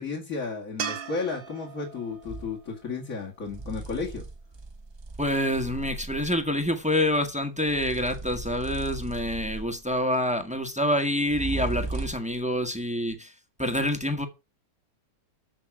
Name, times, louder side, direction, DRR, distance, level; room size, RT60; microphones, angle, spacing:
voice 1, 0.0-4.2, left 4 dB, 45° left, 2.7 m, -33 dB
sound 1, 0.8-4.0 7.3-7.4, right 7 dB, 90° right, 2.0 m, -39 dB
sound 2, 2.2-2.6 3.5-6.5 7.7-9.9 11.3-12.4, right 3 dB, 40° right, 0.3 m, -37 dB
voice 2, 5.2-13.3 13.6-14.3, left 1 dB, 5° right, 1.4 m, -27 dB
14.0 x 6.0 x 4.9 m
omnidirectional pair, 2.0 m